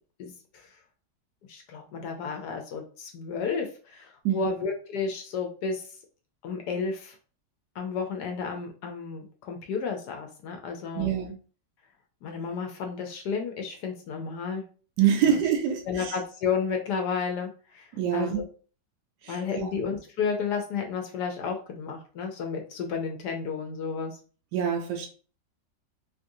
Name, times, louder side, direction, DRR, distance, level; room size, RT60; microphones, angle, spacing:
voice 1, 0.2-0.7 1.5-5.9 6.4-7.2 7.8-11.1 12.2-14.6 15.3-15.4 15.9-17.9 18.1-18.4 19.3-24.2, left 5 dB, 75° left, 3 dB, 1.1 m, -32 dB
voice 2, 10.9-11.4 15.0-16.2 17.9-18.4 19.2-19.7 24.5-25.1, right 9 dB, 75° right, 3 dB, 1.0 m, -26 dB
3.1 x 2.5 x 2.6 m, 0.39 s
omnidirectional pair, 2.0 m